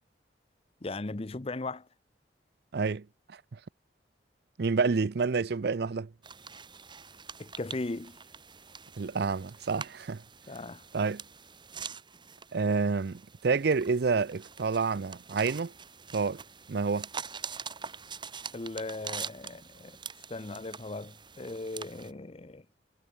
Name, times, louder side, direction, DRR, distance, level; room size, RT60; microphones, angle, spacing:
voice 1, 0.8-1.9 7.4-8.2 10.5-10.8 18.5-20.0 20.3-22.7, left 2 dB, 35° left, 0.7 m, -38 dB
voice 2, 2.7-3.6 4.6-6.1 9.0-10.2 10.9-11.2 12.5-15.7 16.1-16.4 16.7-17.1, right 4 dB, 60° right, 0.5 m, -29 dB
sound 1, 6.2-22.1, right 6 dB, 25° right, 5.2 m, -45 dB
head